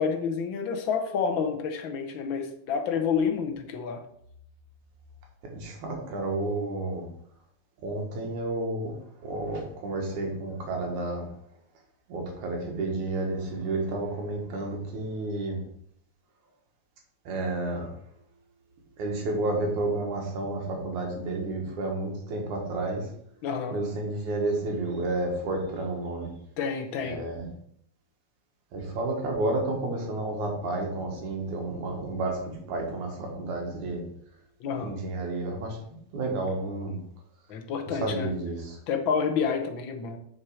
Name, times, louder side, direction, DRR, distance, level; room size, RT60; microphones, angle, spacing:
voice 1, 0.0-4.0 23.4-23.8 26.6-27.2 34.6-34.9 37.5-38.3 38.9-40.2, left 6 dB, 60° left, 5 dB, 1.3 m, -29 dB
voice 2, 5.4-7.0 7.8-8.9 9.2-11.3 12.1-15.6 17.2-17.9 19.0-23.1 23.7-26.3 27.0-27.5 28.7-34.0 34.8-37.0 37.9-38.8, right 2 dB, 90° right, 1 dB, 3.1 m, -31 dB
7.1 x 6.5 x 4.9 m, 0.70 s
omnidirectional pair, 3.3 m